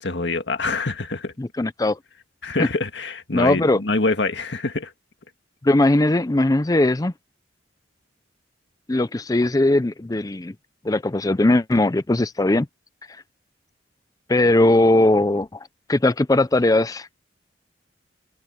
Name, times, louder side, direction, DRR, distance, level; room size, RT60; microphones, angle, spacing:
voice 1, 0.0-1.3 2.4-4.9, left 3 dB, 70° left, 1.9 m, -25 dB
voice 2, 1.4-2.0 2.6-2.7 3.3-3.8 5.6-7.1 8.9-10.5 10.8-12.7 14.3-17.1, left 2 dB, 20° left, 0.5 m, -19 dB
open air
head